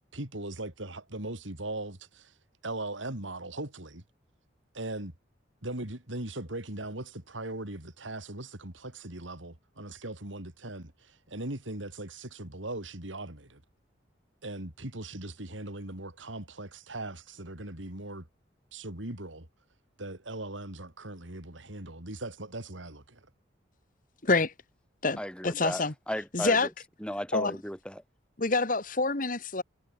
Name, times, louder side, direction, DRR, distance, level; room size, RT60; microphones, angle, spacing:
voice 1, 0.1-2.3 2.6-4.0 4.7-5.1 5.6-13.6 14.4-18.3 18.7-19.5 20.0-23.3, right 2 dB, 80° right, 4.0 m, -39 dB
voice 2, 24.2-24.5 25.0-25.9 26.3-26.7 27.3-27.6 28.4-29.6, left 3 dB, 45° left, 1.6 m, -27 dB
voice 3, 25.2-26.7 27.0-28.0, equal, 5° left, 4.8 m, -35 dB
head